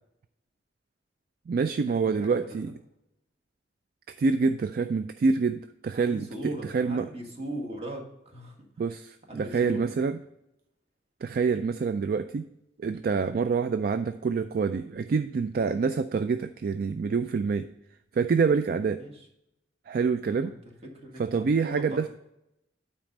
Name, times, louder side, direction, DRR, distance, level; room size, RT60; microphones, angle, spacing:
voice 1, 1.5-2.7 4.2-7.1 8.8-10.2 11.2-12.4 12.8-17.7 18.1-19.0 19.9-20.5 21.2-22.1, right 5 dB, 55° right, 10 dB, 0.3 m, -26 dB
voice 2, 2.1-2.6 5.9-8.7 9.3-9.9 19.0-19.3 20.2-20.5 20.9-22.1, right 1 dB, 35° right, 1 dB, 1.6 m, -39 dB
9.1 x 4.3 x 5.2 m, 0.82 s
head